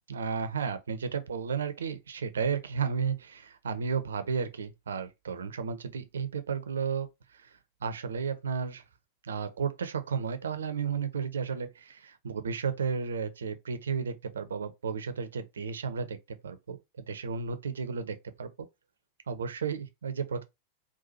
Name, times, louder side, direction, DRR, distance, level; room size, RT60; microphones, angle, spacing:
voice 1, 0.1-8.8 9.2-16.2 16.4-18.7 19.3-20.4, right 6 dB, 70° right, 0.7 m, -33 dB
4.1 x 2.5 x 4.1 m
figure-of-eight pair, 90°, 0 cm